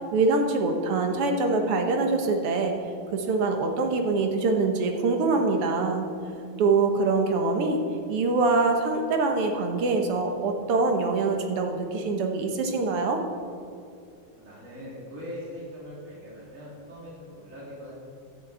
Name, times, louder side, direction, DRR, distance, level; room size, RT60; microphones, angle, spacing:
voice 1, 0.1-2.8 3.1-6.1 6.6-7.8 8.1-13.2, right 3 dB, 90° right, 4 dB, 2.2 m, -24 dB
voice 2, 14.4-17.9, equal, 35° right, -7 dB, 3.7 m, -41 dB
12.0 x 6.5 x 7.9 m, 2.4 s
omnidirectional pair, 2.4 m